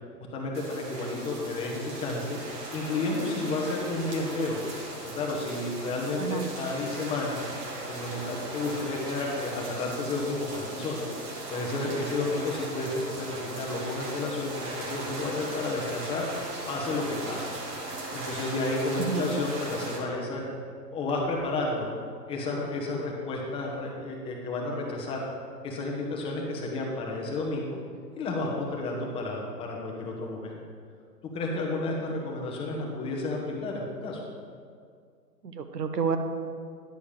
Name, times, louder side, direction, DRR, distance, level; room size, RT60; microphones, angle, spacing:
voice 1, 0.3-2.4 2.7-4.6 5.0-7.4 7.9-11.1 11.5-16.3 16.7-17.5 18.1-20.4 20.9-21.9 22.3-25.2 25.6-27.8 28.2-30.6 31.3-34.2, left 2 dB, 10° left, -1 dB, 1.0 m, -31 dB
sound 1, 0.5-20.0, right 2 dB, 20° right, 1.1 m, -38 dB
voice 2, 19.0-19.3 35.4-36.2, right 6 dB, 70° right, 7 dB, 1.1 m, -29 dB
10.5 x 6.9 x 5.0 m, 2.2 s
hypercardioid pair, 135°, 50 cm